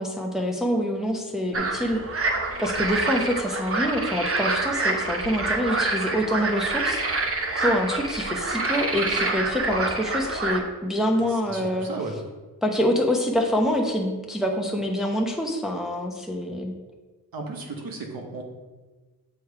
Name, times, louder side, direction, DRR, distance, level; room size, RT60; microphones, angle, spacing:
voice 1, 0.0-2.0 2.6-7.0 7.6-11.9 12.6-16.7, equal, ahead, 1 dB, 0.8 m, -26 dB
sound 1, 1.5-10.6, right 3 dB, 35° right, 0.8 m, -27 dB
voice 2, 11.2-12.2 17.3-18.4, right 3 dB, 65° right, 2 dB, 1.2 m, -35 dB
7.3 x 3.0 x 4.7 m, 1.3 s
cardioid pair, 65°, 38 cm